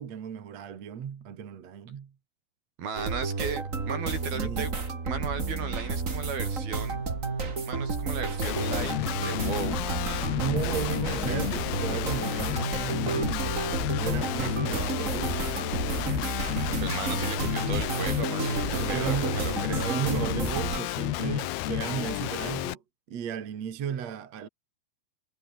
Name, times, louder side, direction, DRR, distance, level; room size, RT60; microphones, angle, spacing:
voice 1, 0.0-2.1 4.3-4.7 10.3-13.6 14.0-15.5 18.8-22.8 23.1-24.5, right 8 dB, 50° right, 3.0 m, -35 dB
voice 2, 2.8-4.7 5.1-7.0 7.7-10.2 16.8-20.2, right 6 dB, 75° right, 6.6 m, -36 dB
sound 1, 3.0-20.8, right 4 dB, 25° right, 2.2 m, -31 dB
Guitar, 8.4-22.7, left 17 dB, 90° left, 2.8 m, -31 dB
omnidirectional pair, 4.4 m